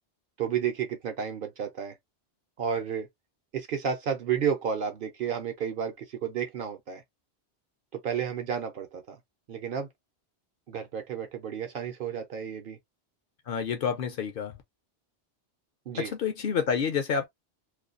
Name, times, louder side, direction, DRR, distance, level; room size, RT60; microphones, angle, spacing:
voice 1, 0.4-1.9 2.6-3.1 3.5-7.0 7.9-9.2 9.5-9.9 10.7-12.8 15.9-16.1, right 7 dB, 60° right, 0.7 m, -31 dB
voice 2, 13.5-14.5 16.0-17.3, left 6 dB, 60° left, 0.7 m, -28 dB
2.4 x 2.2 x 2.4 m
omnidirectional pair, 1.1 m